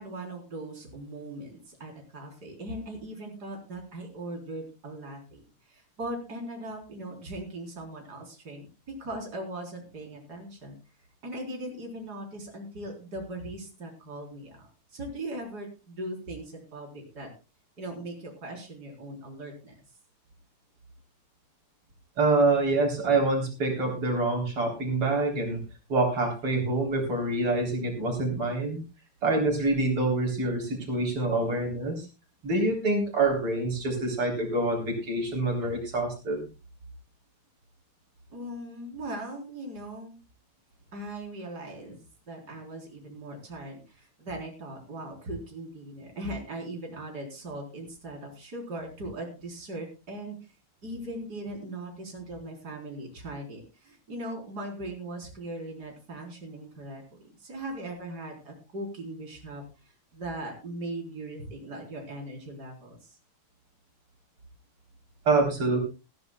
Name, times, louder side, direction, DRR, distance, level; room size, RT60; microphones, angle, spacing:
voice 1, 0.0-10.8 11.2-17.3 17.8-19.7 38.3-40.2 40.9-50.4 50.8-59.6 60.1-63.2, right 1 dB, 45° right, 0 dB, 4.7 m, -39 dB
voice 2, 22.2-25.6 25.9-28.8 29.2-32.1 32.4-36.5 65.3-65.8, right 2 dB, 85° right, 1 dB, 4.8 m, -26 dB
20.0 x 14.0 x 2.3 m, 0.29 s
omnidirectional pair, 2.4 m